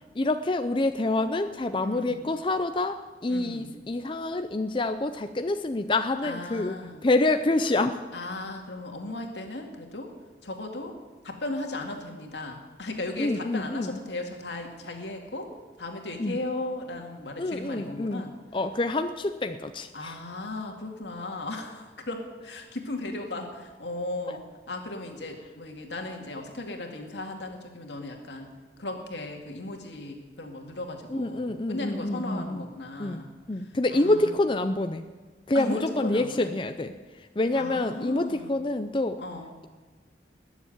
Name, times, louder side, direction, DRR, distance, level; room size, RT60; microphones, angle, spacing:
voice 1, 0.2-6.8 7.0-8.0 13.2-14.0 16.2-16.4 17.4-20.2 31.1-32.7 33.0-33.2 33.5-35.0 35.5-36.9 37.4-39.2, left 2 dB, 30° left, 8 dB, 0.5 m, -27 dB
voice 2, 1.8-2.3 3.3-3.8 6.2-7.0 8.1-10.1 10.4-10.9 11.2-15.5 15.8-18.3 19.9-28.5 28.8-34.4 35.5-36.5 37.5-38.6 39.2-39.5, left 2 dB, 80° left, 2 dB, 2.2 m, -36 dB
20.5 x 7.3 x 9.5 m, 1.3 s
head